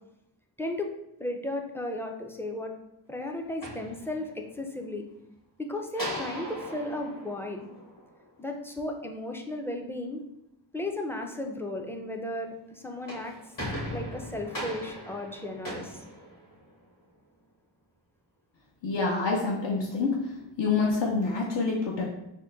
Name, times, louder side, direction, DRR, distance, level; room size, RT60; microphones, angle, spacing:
voice 1, 0.6-0.9 1.2-2.7 3.1-5.0 5.6-7.7 8.4-10.2 10.7-13.3 13.9-16.0, left 1 dB, 5° left, 2 dB, 0.4 m, -35 dB
sound 1, 3.4-4.6 5.9-8.4 12.8-16.9, equal, 45° left, 1.5 m, -39 dB
voice 2, 18.8-20.1 20.6-22.1, left 4 dB, 65° left, -2 dB, 0.7 m, -27 dB
3.6 x 2.1 x 3.8 m, 0.85 s
wide cardioid pair, 75°, 46 cm